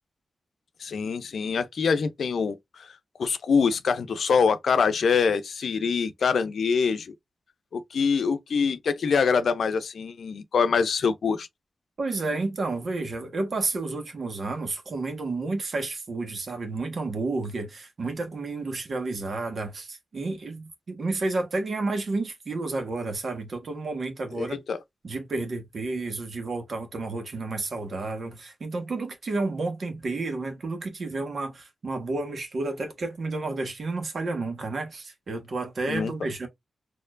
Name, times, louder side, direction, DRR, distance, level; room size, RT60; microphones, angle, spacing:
voice 1, 0.8-2.9 3.2-7.1 7.7-11.5 24.4-24.8 35.9-36.1, left 5 dB, 75° left, 0.6 m, -24 dB
voice 2, 12.0-24.6 25.0-36.5, right 3 dB, 60° right, 1.5 m, -31 dB
4.4 x 2.9 x 2.5 m
cardioid pair, 80°, 0 cm